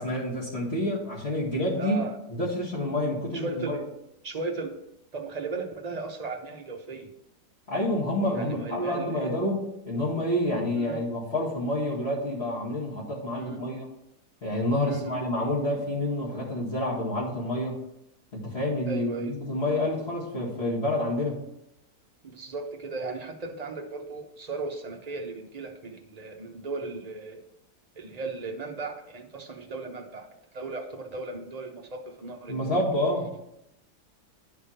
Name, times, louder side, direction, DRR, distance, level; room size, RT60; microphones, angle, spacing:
voice 1, 0.0-2.0 2.3-3.8 7.7-13.9 14.4-17.8 18.3-21.4 32.5-33.3, left 1 dB, 40° left, -8 dB, 2.1 m, -28 dB
voice 2, 1.8-2.2 3.3-3.9 4.2-4.8 5.1-7.1 8.3-9.4 10.7-11.0 13.4-13.6 14.8-15.2 18.9-19.3 22.2-27.4 27.9-32.8, right 3 dB, 35° right, 3 dB, 0.6 m, -36 dB
10.5 x 3.5 x 5.6 m, 0.84 s
omnidirectional pair, 1.9 m